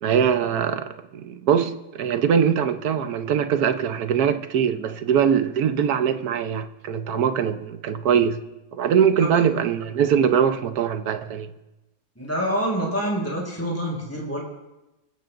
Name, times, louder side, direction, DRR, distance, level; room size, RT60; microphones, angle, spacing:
voice 1, 0.0-8.4 8.7-11.5, right 8 dB, 65° right, 1.3 m, -22 dB
voice 2, 12.2-14.4, equal, 10° left, 5.6 m, -26 dB
28.0 x 15.0 x 2.6 m
omnidirectional pair, 1.8 m